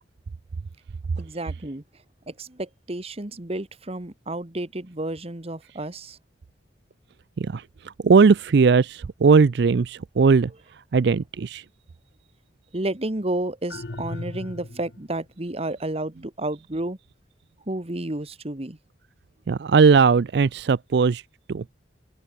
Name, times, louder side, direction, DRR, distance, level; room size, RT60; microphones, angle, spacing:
voice 1, 1.2-1.8 2.3-6.2 12.7-17.0 17.7-18.8, right 1 dB, 35° right, 1.5 m, -31 dB
voice 2, 7.4-11.7 19.5-21.7, right 5 dB, 65° right, 0.4 m, -19 dB
sound 1, 13.7-15.2, left 2 dB, 65° left, 1.1 m, -36 dB
open air
head